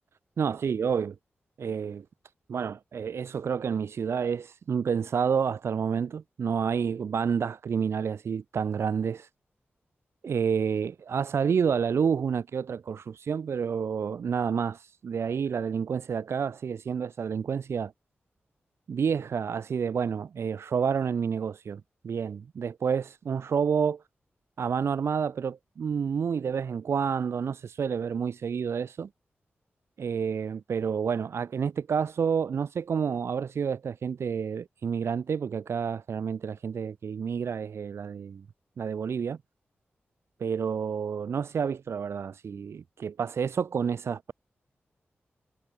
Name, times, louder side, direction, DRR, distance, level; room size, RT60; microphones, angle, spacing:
voice 1, 0.4-1.1 1.6-2.0 2.5-9.3 10.2-17.9 18.9-24.0 24.6-29.1 30.0-38.4 38.8-39.4 40.4-44.3, right 6 dB, 75° right, 0.8 m, -29 dB
wide cardioid pair, 80°, 4 cm